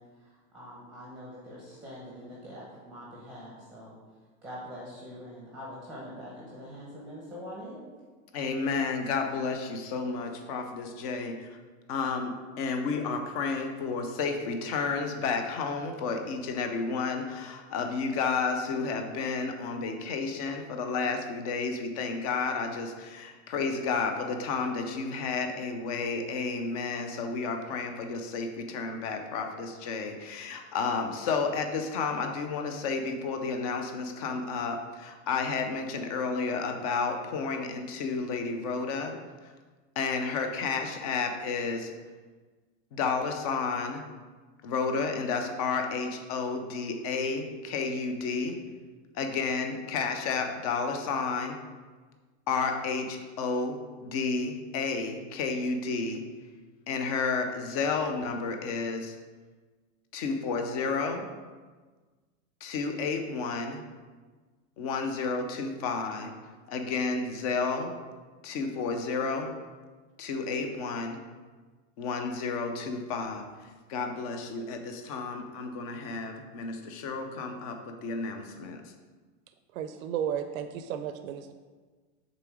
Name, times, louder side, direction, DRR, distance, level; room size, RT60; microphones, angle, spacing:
voice 1, 0.0-4.0 4.4-7.8, equal, ahead, -6 dB, 0.8 m, -44 dB
voice 2, 8.3-11.5 11.9-39.2 40.0-41.9 42.9-44.0 44.6-48.6 49.1-51.6 52.5-56.2 56.9-59.1 60.1-61.3 62.6-63.8 64.8-66.3 66.7-67.9 68.4-69.5 70.2-71.2 72.0-73.4 73.9-78.8, left 4 dB, 30° left, 5 dB, 0.4 m, -31 dB
voice 3, 79.7-81.5, right 9 dB, 85° right, 8 dB, 0.6 m, -33 dB
6.9 x 3.8 x 4.8 m, 1.4 s
supercardioid pair, 175°, 40 cm